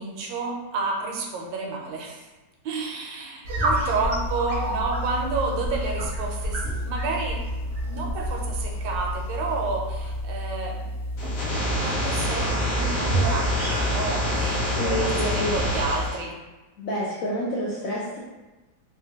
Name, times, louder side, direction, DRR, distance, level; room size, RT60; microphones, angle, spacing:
voice 1, 0.0-2.2 2.6-10.9 11.8-16.4, right 3 dB, 80° right, 0 dB, 1.2 m, -30 dB
sound 1, 3.4-16.1, equal, 60° right, 0.7 m, -29 dB
sound 2, 11.2-16.2, equal, 60° left, 1.0 m, -27 dB
voice 2, 14.7-15.5 16.8-18.2, equal, 80° left, -6 dB, 0.7 m, -28 dB
3.1 x 2.2 x 2.8 m, 1.1 s
omnidirectional pair, 2.0 m